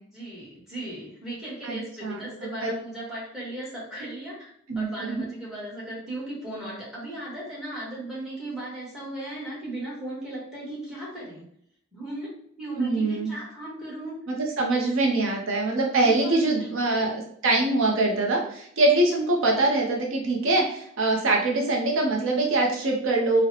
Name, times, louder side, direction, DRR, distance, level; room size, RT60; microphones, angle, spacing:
voice 1, 0.1-11.4 11.9-12.3 12.6-14.1 14.7-15.1 16.0-17.1, right 1 dB, ahead, -6 dB, 1.3 m, -37 dB
voice 2, 1.6-2.2 2.6-2.7 4.7-5.2 12.8-13.3 14.3-23.4, right 2 dB, 65° right, 0 dB, 0.6 m, -23 dB
3.9 x 2.1 x 2.8 m, 0.69 s
head